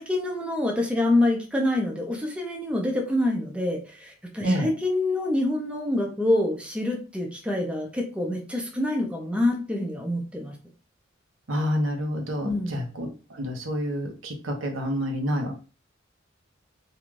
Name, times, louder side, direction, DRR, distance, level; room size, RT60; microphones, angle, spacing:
voice 1, 0.0-10.6 12.4-12.8, left 1 dB, 5° right, 1 dB, 0.5 m, -26 dB
voice 2, 11.5-15.5, equal, 90° right, 3 dB, 0.7 m, -28 dB
2.5 x 2.3 x 3.1 m, 0.35 s
head